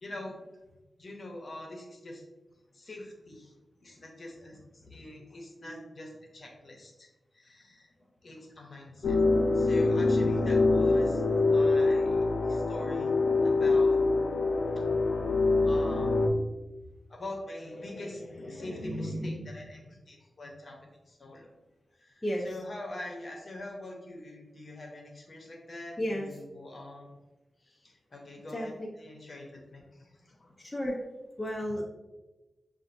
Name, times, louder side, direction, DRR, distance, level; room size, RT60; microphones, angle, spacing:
voice 1, 0.0-0.3 1.0-2.2 2.7-3.5 3.8-7.1 7.3-7.9 8.2-12.2 12.5-13.1 13.4-14.0 15.6-16.1 17.1-20.8 21.1-21.5 22.0-27.1 27.6-28.7 29.0-30.5, left 1 dB, 45° left, 0 dB, 0.9 m, -43 dB
sound 1, 9.0-16.3, left 3 dB, 80° left, 0.5 m, -25 dB
voice 2, 22.2-22.6 26.0-26.3 28.5-28.9 30.6-31.0 31.4-31.8, equal, 20° left, -3 dB, 0.6 m, -32 dB
6.8 x 2.5 x 2.6 m, 1.1 s
wide cardioid pair, 130°, 0 cm